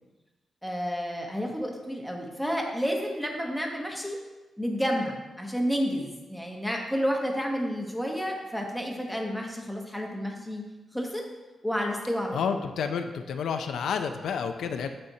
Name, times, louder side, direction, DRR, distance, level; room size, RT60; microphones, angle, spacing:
voice 1, 0.6-4.2 4.6-10.6 10.9-11.2 11.6-12.4, equal, ahead, 0 dB, 1.0 m, -30 dB
voice 2, 12.3-14.9, left 6 dB, 85° left, 7 dB, 0.4 m, -30 dB
13.0 x 4.3 x 2.7 m, 1.2 s
wide cardioid pair, 140°, 0 cm